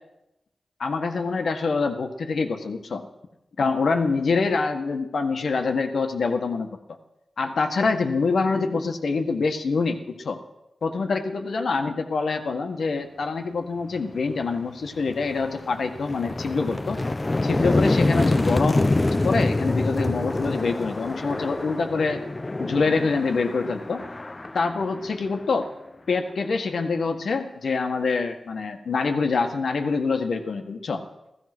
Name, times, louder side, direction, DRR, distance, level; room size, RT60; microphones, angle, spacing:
voice 1, 0.8-3.0 3.6-6.7 7.4-10.4 10.8-17.0 17.4-22.2 22.6-24.0 24.5-25.7 26.1-31.0, left 4 dB, 80° left, 5 dB, 1.6 m, -25 dB
sound 1, 14.3-14.4 14.9-25.6, left 2 dB, 35° left, 0.7 m, -26 dB
15.5 x 15.0 x 6.2 m, 0.90 s
cardioid pair, 55°, 0 cm